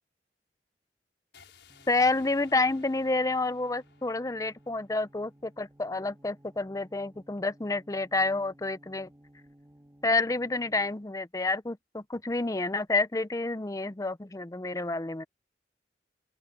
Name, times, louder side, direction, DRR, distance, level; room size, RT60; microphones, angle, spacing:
sound 1, 1.3-5.4, left 5 dB, 90° left, 5.8 m, -58 dB
sound 2, 1.7-11.1, right 1 dB, 15° right, 2.0 m, -59 dB
voice 1, 1.9-9.1 10.0-15.2, left 3 dB, 20° left, 0.6 m, -29 dB
open air
head